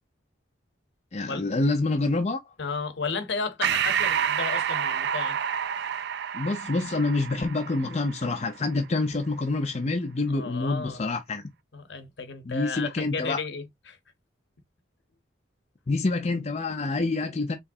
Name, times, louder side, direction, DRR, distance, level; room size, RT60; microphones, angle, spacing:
voice 1, 1.1-2.4 6.3-11.4 12.5-13.4 15.9-17.6, left 3 dB, 35° left, 0.5 m, -27 dB
voice 2, 2.6-5.4 10.3-11.0 11.7-14.0, left 4 dB, 65° left, 0.9 m, -33 dB
Breathing, 3.6-8.5, right 8 dB, 60° right, 0.3 m, -29 dB
4.7 x 3.2 x 2.7 m
head